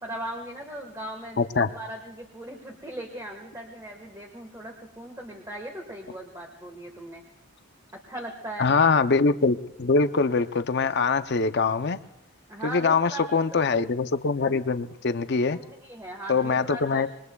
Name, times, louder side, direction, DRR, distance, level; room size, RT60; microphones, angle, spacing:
voice 1, 0.0-7.2 7.9-8.7 12.5-13.4 14.4-14.6 15.3-17.1, right 1 dB, 15° right, 1.5 m, -39 dB
voice 2, 1.4-1.7 8.6-12.0 12.6-15.6 16.3-17.1, left 4 dB, 50° left, 0.6 m, -23 dB
27.5 x 21.5 x 2.3 m
head